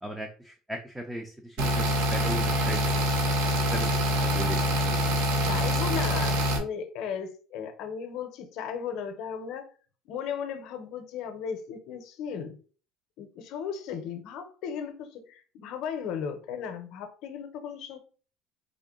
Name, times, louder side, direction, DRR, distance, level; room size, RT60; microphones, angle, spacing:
voice 1, 0.0-3.0 3.7-3.9 4.2-5.0 5.5-5.7, right 1 dB, 5° right, 0.4 m, -37 dB
sound 1, 1.6-6.6, equal, 80° right, 0.8 m, -25 dB
voice 2, 5.4-9.7 10.0-12.6 13.2-18.0, left 7 dB, 55° left, 0.7 m, -36 dB
3.7 x 2.1 x 3.6 m
cardioid pair, 155°, 0 cm